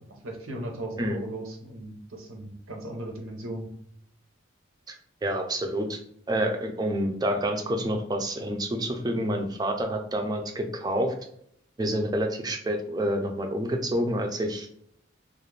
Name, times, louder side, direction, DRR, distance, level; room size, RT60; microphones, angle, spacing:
voice 1, 0.2-3.7, right 1 dB, 85° right, 2 dB, 0.7 m, -37 dB
voice 2, 5.2-6.0 6.3-11.1 11.8-14.7, right 1 dB, 20° right, 4 dB, 0.3 m, -28 dB
2.4 x 2.1 x 3.1 m, 0.69 s
head